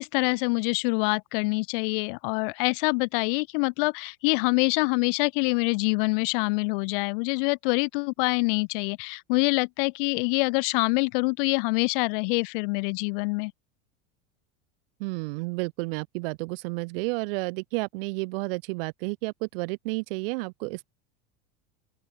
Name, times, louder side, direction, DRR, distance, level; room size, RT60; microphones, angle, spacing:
voice 1, 0.0-13.5, left 32 dB, 65° left, 1.1 m, -25 dB
voice 2, 15.0-20.9, right 26 dB, 70° right, 1.5 m, -31 dB
open air
supercardioid pair, 145°, 29 cm